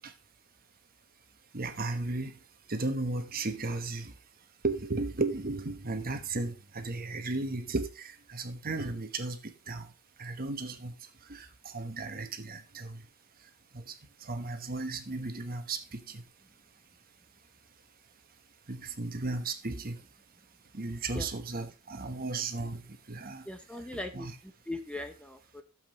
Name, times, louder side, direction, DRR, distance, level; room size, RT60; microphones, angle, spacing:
voice 1, 1.5-2.3 2.7-4.1 4.6-9.4 9.7-9.9 10.2-10.9 11.3-13.0 13.7-13.9 14.2-16.2 18.7-20.0 20.7-22.8 23.1-23.4 24.1-24.3, right 3 dB, 40° right, 1.2 m, -35 dB
voice 2, 23.5-25.6, left 1 dB, 5° left, 0.8 m, -39 dB
12.5 x 7.5 x 3.1 m
head